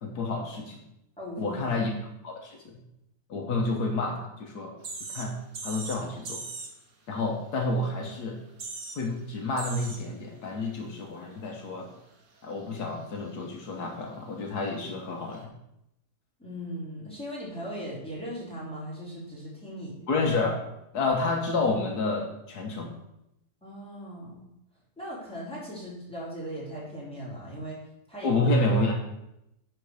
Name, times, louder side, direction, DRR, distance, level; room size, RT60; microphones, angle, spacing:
voice 1, 0.0-0.8 1.4-1.9 2.2-2.8 3.3-4.8 5.1-5.3 5.6-6.4 7.1-8.4 9.0-11.9 12.4-15.4 20.1-20.6 20.9-22.9 28.2-28.9, left 2 dB, 75° left, 2 dB, 1.7 m, -29 dB
voice 2, 1.2-1.8 16.4-20.0 23.6-24.5 25.0-27.8 28.1-28.5, equal, 5° left, -8 dB, 3.8 m, -38 dB
sound 1, 4.8-5.3 5.5-6.0 6.3-6.7 8.1-8.2 8.4-9.0 9.6-10.0 10.6-10.7 15.3-15.4, right 3 dB, 50° right, 1.6 m, -38 dB
10.5 x 4.5 x 6.4 m, 0.84 s
omnidirectional pair, 1.7 m